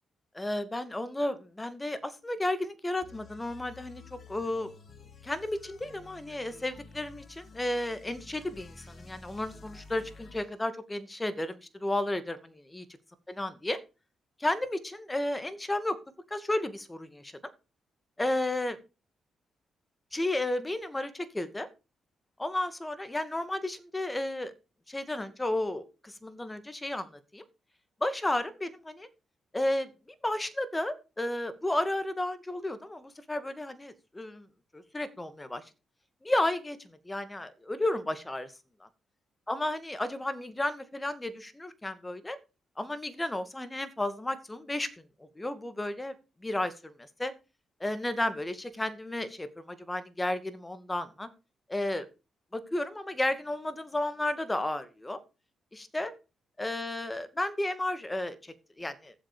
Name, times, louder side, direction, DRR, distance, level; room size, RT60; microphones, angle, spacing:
voice 1, 0.3-4.7 5.2-12.9 13.4-13.8 14.4-16.0 16.3-17.3 18.2-18.8 20.1-21.7 22.4-24.5 24.9-27.4 28.0-29.1 29.5-29.9 30.2-34.5 34.7-35.6 36.2-38.5 38.8-38.9 39.5-42.4 42.8-46.1 46.4-47.3 47.8-51.3 51.7-52.1 52.5-55.2 55.7-56.1 56.6-59.1, left 1 dB, 20° left, 12 dB, 2.2 m, -33 dB
sound 1, 3.0-10.6, left 4 dB, 50° left, 2.4 m, -51 dB
13.5 x 7.8 x 5.2 m, 0.31 s
supercardioid pair, 60°, 0 cm